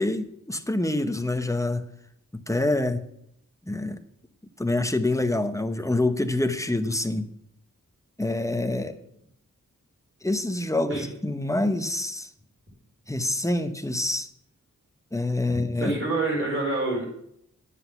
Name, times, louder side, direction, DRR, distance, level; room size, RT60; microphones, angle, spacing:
voice 1, 0.0-1.9 2.5-3.0 3.7-4.0 4.6-7.3 8.2-8.9 10.2-12.3 13.1-14.3 15.1-15.9, left 2 dB, 10° left, 9 dB, 0.8 m, -26 dB
voice 2, 15.4-17.1, right 2 dB, 40° right, -2 dB, 4.2 m, -27 dB
9.9 x 7.9 x 5.8 m, 0.74 s
wide cardioid pair, 85°, 32 cm